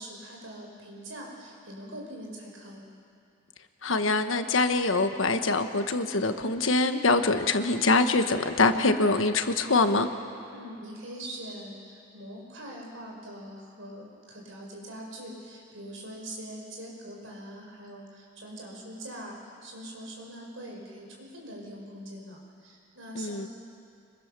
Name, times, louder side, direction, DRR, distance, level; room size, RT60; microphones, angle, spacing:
voice 1, 0.0-2.9 10.5-23.5, right 1 dB, 75° right, -1 dB, 5.6 m, -43 dB
voice 2, 3.8-10.1 23.1-23.5, left 3 dB, 75° left, 8 dB, 1.3 m, -24 dB
26.0 x 23.0 x 6.8 m, 2.5 s
head